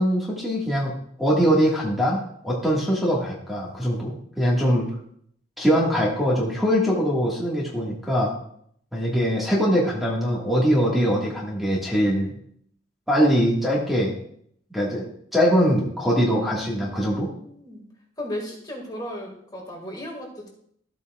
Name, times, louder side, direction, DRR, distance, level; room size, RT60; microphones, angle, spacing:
voice 1, 0.0-4.9 5.6-8.3 8.9-12.3 13.1-14.1 14.7-17.3, equal, ahead, -4 dB, 1.7 m, -22 dB
voice 2, 16.1-17.8 18.2-20.5, left 1 dB, 20° left, 0 dB, 1.9 m, -36 dB
13.5 x 8.3 x 2.4 m, 0.66 s
head